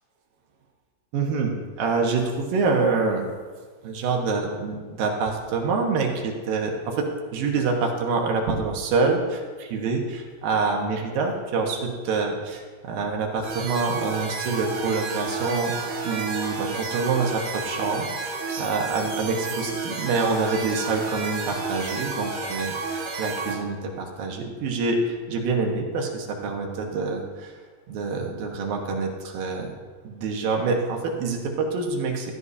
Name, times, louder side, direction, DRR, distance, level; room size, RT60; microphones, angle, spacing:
voice 1, 1.1-3.2 3.8-15.7 16.0-27.5 27.9-29.7 30.0-32.3, right 4 dB, 80° right, 1 dB, 3.1 m, -26 dB
sound 1, 13.4-23.5, right 3 dB, 45° right, 2.1 m, -31 dB
16.0 x 14.0 x 2.8 m, 1.5 s
omnidirectional pair, 4.1 m